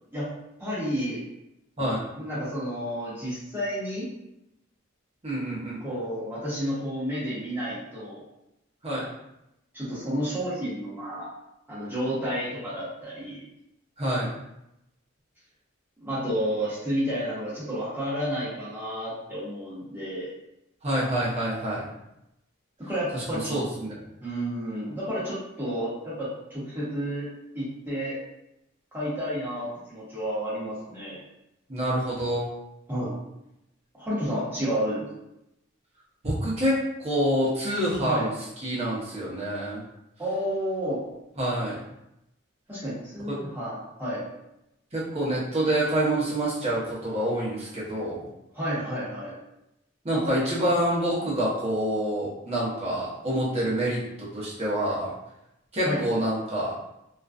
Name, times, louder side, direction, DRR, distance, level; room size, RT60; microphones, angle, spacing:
voice 1, 0.6-1.2 2.2-4.1 5.8-8.2 9.7-11.3 11.7-13.4 16.0-20.3 22.9-23.6 24.2-27.3 27.5-28.2 28.9-31.2 32.9-33.2 33.9-35.1 38.0-38.2 40.2-41.1 42.7-44.2 48.5-49.4 50.1-50.2 55.8-56.0, equal, 10° right, -9 dB, 0.9 m, -31 dB
voice 2, 5.2-5.8 8.8-9.0 14.0-14.3 20.8-21.8 23.1-24.0 31.7-32.5 36.2-38.3 38.6-39.8 41.4-41.8 44.9-48.3 50.0-55.1 55.7-56.7, right 1 dB, 30° right, -6 dB, 0.8 m, -27 dB
2.4 x 2.2 x 2.4 m, 0.86 s
head